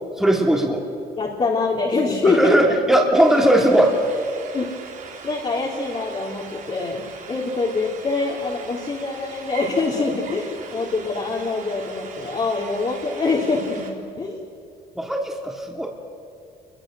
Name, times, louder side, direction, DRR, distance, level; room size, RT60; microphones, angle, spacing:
voice 1, 0.2-0.9 2.2-3.9 15.0-15.9, right 1 dB, 5° right, 0 dB, 2.9 m, -18 dB
voice 2, 1.2-2.8 4.5-4.7 5.2-14.4, left 3 dB, 35° left, -3 dB, 3.7 m, -24 dB
sound 1, 3.1-13.9, right 6 dB, 50° right, 3.6 m, -40 dB
28.0 x 23.0 x 6.5 m, 2.5 s
cardioid pair, 110°, 17 cm